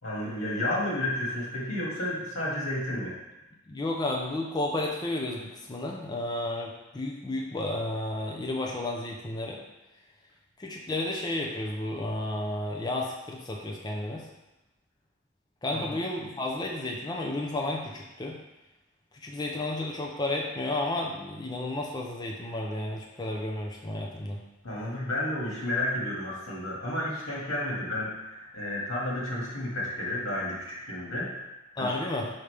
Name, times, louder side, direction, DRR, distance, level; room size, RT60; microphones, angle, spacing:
voice 1, 0.0-3.1 15.8-16.0 24.6-31.3 31.8-31.9, left 1 dB, 90° left, -5 dB, 2.0 m, -31 dB
voice 2, 3.7-9.6 10.6-14.3 15.6-18.4 19.2-24.4 31.8-32.3, left 2 dB, 20° left, -1 dB, 0.5 m, -32 dB
5.6 x 5.1 x 3.3 m, 0.99 s
head